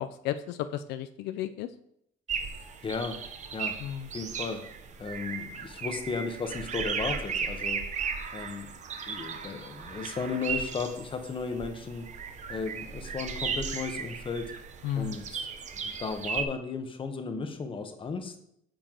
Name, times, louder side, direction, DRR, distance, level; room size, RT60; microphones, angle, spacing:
voice 1, 0.0-1.7 3.8-4.1 14.8-15.2, left 11 dB, 85° left, 11 dB, 0.4 m, -33 dB
sound 1, 2.3-16.4, right 6 dB, 45° right, 0.8 m, -36 dB
voice 2, 2.8-3.2 3.5-3.8 4.1-4.6 5.0-7.8 8.3-8.7 9.1-12.1 12.5-14.5 15.0-15.5 15.8-18.3, left 4 dB, 30° left, 6 dB, 1.0 m, -35 dB
8.8 x 4.6 x 3.8 m, 0.74 s
cardioid pair, 110°, 17 cm